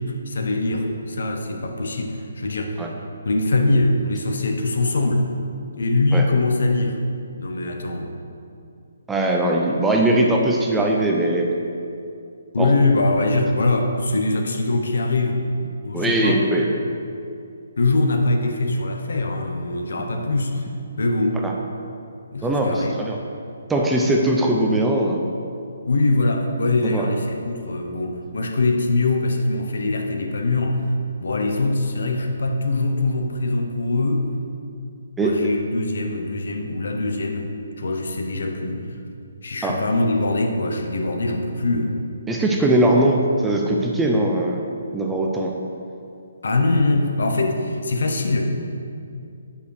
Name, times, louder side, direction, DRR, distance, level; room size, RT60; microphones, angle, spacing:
voice 1, 0.1-2.9 3.2-5.3 5.8-7.0 7.4-8.1 12.5-15.5 15.8-16.4 17.8-20.7 21.0-21.5 22.3-23.0 25.9-30.9 31.2-34.3 35.2-38.8 39.4-42.0 46.4-48.7, left 2 dB, 70° left, 4 dB, 0.9 m, -22 dB
voice 2, 9.1-11.5 12.6-12.7 15.9-16.7 21.4-21.5 22.4-23.2 23.7-25.2 26.8-27.1 35.2-35.4 39.6-39.8 42.3-44.6 44.9-45.5, right 1 dB, 5° right, 0 dB, 0.5 m, -20 dB
5.2 x 5.1 x 6.5 m, 2.5 s
hypercardioid pair, 160°, 0 cm